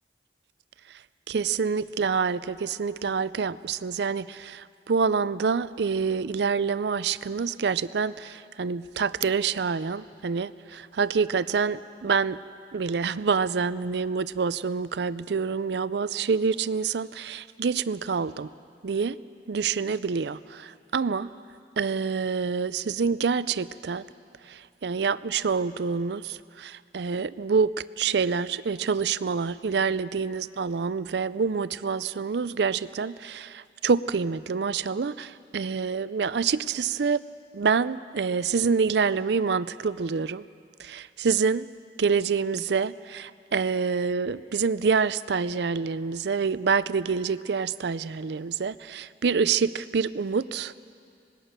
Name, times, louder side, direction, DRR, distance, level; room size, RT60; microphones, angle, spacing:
voice 1, 1.3-12.4 12.7-18.5 18.8-19.2 19.5-21.3 21.8-24.0 24.5-37.2 37.5-40.4 40.8-41.7 42.0-50.7, right 5 dB, 70° right, 16 dB, 0.5 m, -27 dB
25.5 x 19.0 x 6.6 m, 2.4 s
head